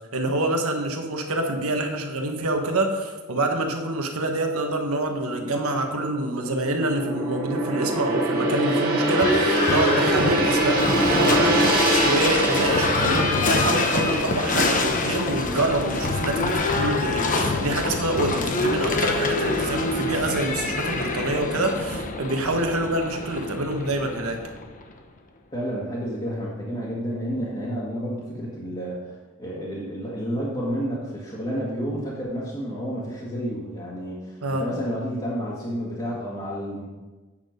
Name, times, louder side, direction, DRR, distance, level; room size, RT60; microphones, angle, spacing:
voice 1, 0.1-24.4 34.4-34.6, right 2 dB, 85° right, 4 dB, 1.3 m, -26 dB
Gong, 4.6-17.0 17.4-17.6, right 2 dB, 45° right, 1.9 m, -26 dB
Livestock farm animals working animals / Bell, 9.0-24.9, left 3 dB, 40° left, 0.9 m, -25 dB
voice 2, 25.5-36.8, equal, 25° left, -7 dB, 1.7 m, -30 dB
9.0 x 6.6 x 5.1 m, 1.3 s
head